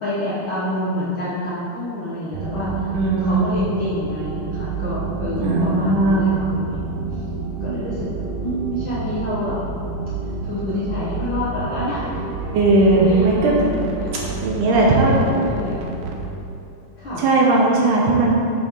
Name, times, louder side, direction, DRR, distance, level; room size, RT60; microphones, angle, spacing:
voice 1, 0.0-2.7 3.2-7.0 7.6-9.6 10.2-12.1 13.0-14.1 14.7-15.8 17.0-17.2, left 1 dB, 65° left, -10 dB, 1.2 m, -28 dB
sound 1, 2.3-16.3, right 4 dB, 90° right, 2.5 m, -29 dB
voice 2, 2.9-3.4 5.4-6.2 12.5-13.6 14.4-15.1 17.2-18.3, right 2 dB, 75° right, -2 dB, 2.2 m, -17 dB
sound 2, 11.4-13.8, left 2 dB, 80° left, 2.7 m, -36 dB
8.8 x 5.6 x 3.7 m, 2.6 s
omnidirectional pair, 4.0 m